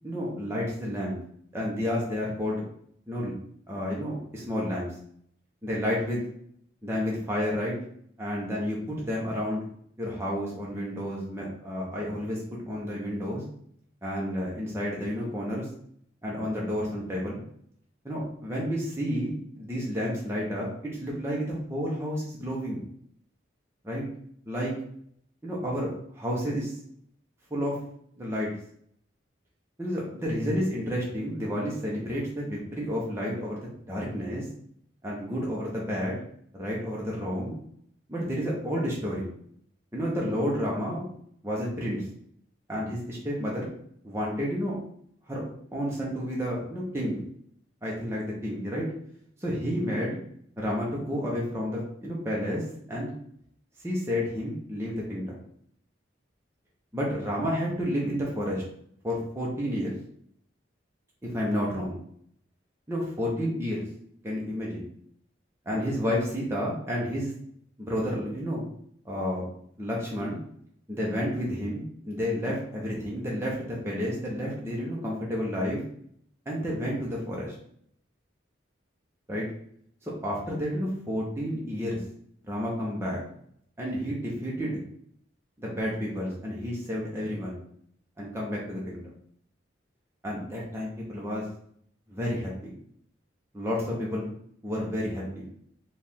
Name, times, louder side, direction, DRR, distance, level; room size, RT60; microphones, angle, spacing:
voice 1, 0.0-1.2 1.5-2.6 3.1-3.3 3.7-4.9 5.6-6.2 6.8-7.8 8.2-9.7 10.0-12.4 12.7-13.4 14.0-15.7 16.2-17.4 18.0-20.7 21.0-22.8 23.8-24.0 24.4-24.7 25.4-26.7 27.5-27.8 28.2-28.5 29.8-33.6 33.9-34.5 35.0-36.2 36.5-37.6 38.1-39.3 39.9-41.1 41.4-42.0 42.7-43.7 44.0-44.7 45.3-45.4 45.7-47.2 47.8-48.9 49.4-50.2 50.6-53.1 53.8-55.4 56.9-58.6 59.0-59.9 61.2-62.0 62.9-63.8 64.2-64.8 65.7-67.3 67.8-68.6 69.0-69.5 69.8-70.4 70.9-75.8 76.5-77.5 79.3-79.5 80.0-82.0 82.5-83.2 83.8-84.8 85.6-87.6 88.2-89.0 90.2-91.4 92.1-92.7 93.5-94.3 94.6-95.4, equal, 15° right, -4 dB, 0.8 m, -30 dB
4.6 x 2.5 x 3.6 m, 0.66 s
head